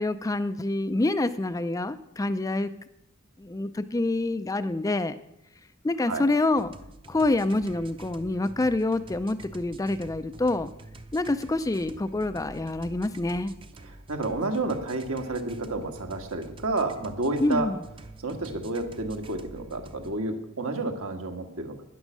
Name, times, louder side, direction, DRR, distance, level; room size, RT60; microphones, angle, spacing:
voice 1, 0.0-2.7 3.4-5.2 5.8-6.7 7.1-10.7 11.1-13.5 17.4-17.8, left 2 dB, 15° left, 12 dB, 0.4 m, -26 dB
sound 1, 6.5-20.1, right 2 dB, 25° right, 0.7 m, -47 dB
voice 2, 13.8-17.7 18.2-21.8, right 2 dB, 70° right, 4 dB, 1.6 m, -30 dB
11.5 x 10.0 x 6.2 m, 0.82 s
head